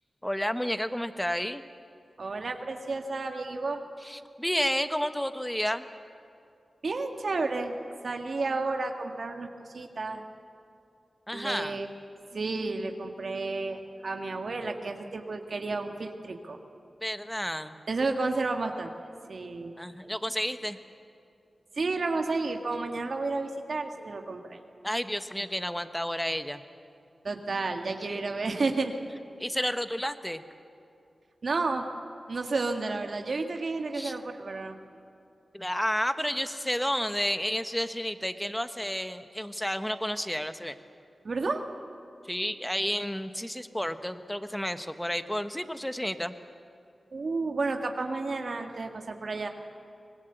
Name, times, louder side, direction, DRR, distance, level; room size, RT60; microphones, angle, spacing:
voice 1, 0.2-1.6 4.0-5.9 11.3-11.8 17.0-17.8 19.8-20.8 24.8-26.6 28.1-28.2 29.4-30.4 33.9-34.2 35.5-40.8 42.2-46.3, equal, 5° left, 10 dB, 1.3 m, -31 dB
voice 2, 2.2-3.8 6.8-7.8 8.0-9.5 9.7-10.2 11.3-11.9 12.3-16.6 17.9-19.7 21.7-24.6 27.2-28.9 31.4-31.8 32.3-34.8 41.2-41.6 47.1-49.5, right 3 dB, 65° right, 4 dB, 1.8 m, -31 dB
24.5 x 19.5 x 8.1 m, 2.6 s
cardioid pair, 45°, 0 cm